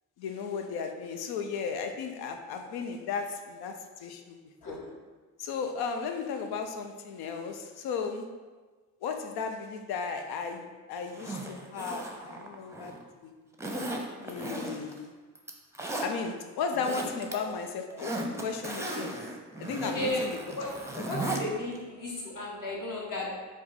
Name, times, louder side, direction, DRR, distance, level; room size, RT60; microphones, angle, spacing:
voice 1, 0.2-4.8 5.4-8.3 9.0-13.3 14.2-15.1 16.0-19.2 19.6-20.4, left 5 dB, 85° left, 6 dB, 0.5 m, -35 dB
Zipper (clothing), 11.1-13.0 13.6-15.0 15.4-16.1 16.6-17.3 17.7-21.4 21.8-21.9, right 1 dB, 10° right, 0.6 m, -36 dB
voice 2, 19.9-20.3 20.6-20.8 21.0-23.3, left 1 dB, 60° left, -3 dB, 1.3 m, -34 dB
4.2 x 2.4 x 3.9 m, 1.3 s
supercardioid pair, 60°, 37 cm